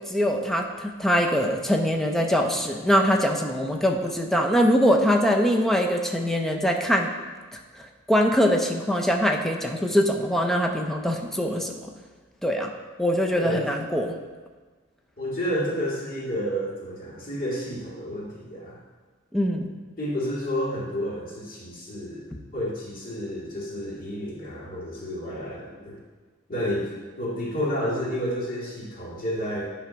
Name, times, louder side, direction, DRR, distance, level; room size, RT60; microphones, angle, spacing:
voice 1, 0.1-7.1 8.1-11.9 12.4-12.7 13.0-14.2 19.3-19.7, equal, ahead, 2 dB, 0.5 m, -23 dB
voice 2, 15.2-18.8 20.0-22.3 22.5-26.0 26.5-26.9 27.2-29.6, equal, 45° left, -6 dB, 2.1 m, -30 dB
10.0 x 3.4 x 5.1 m, 1.4 s
head